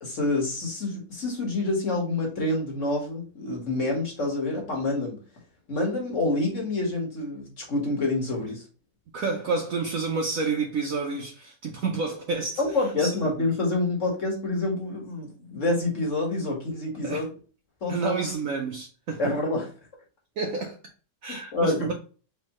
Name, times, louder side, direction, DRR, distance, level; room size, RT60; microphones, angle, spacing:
voice 1, 0.0-5.2 5.7-8.6 12.6-17.3 17.8-18.1 19.2-19.7 21.3-21.9, left 2 dB, 45° left, 1.8 m, -27 dB
voice 2, 9.1-12.6 13.0-13.1 17.0-17.2 17.9-19.2 20.4-20.8 21.2-21.9, right 4 dB, 60° right, 0.9 m, -29 dB
4.3 x 3.6 x 2.9 m
omnidirectional pair, 2.0 m